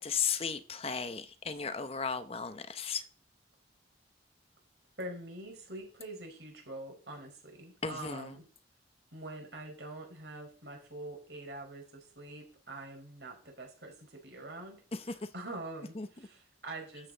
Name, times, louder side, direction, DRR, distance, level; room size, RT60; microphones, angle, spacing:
voice 1, 0.0-3.0 7.8-8.4 14.9-15.3 15.9-16.1, left 6 dB, 35° left, 10 dB, 0.7 m, -35 dB
voice 2, 5.0-8.4 9.1-14.8 15.3-17.1, right 2 dB, 70° right, 1 dB, 5.2 m, -45 dB
12.5 x 8.5 x 4.0 m, 0.39 s
head